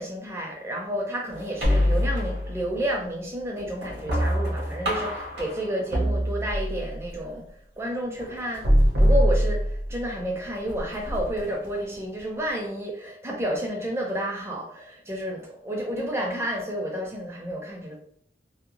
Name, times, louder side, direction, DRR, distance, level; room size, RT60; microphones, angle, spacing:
voice 1, 0.0-7.5 7.8-8.7 9.0-18.0, right 1 dB, 15° right, 0.5 m, -30 dB
sound 1, 1.3-2.9 3.4-6.4 6.8-7.4 8.2-10.1 10.4-12.5, equal, 85° right, 1.3 m, -38 dB
sound 2, 1.6-2.7 4.1-5.1 5.9-7.0 8.6-10.1, equal, 60° right, 0.7 m, -22 dB
2.8 x 2.1 x 2.6 m
head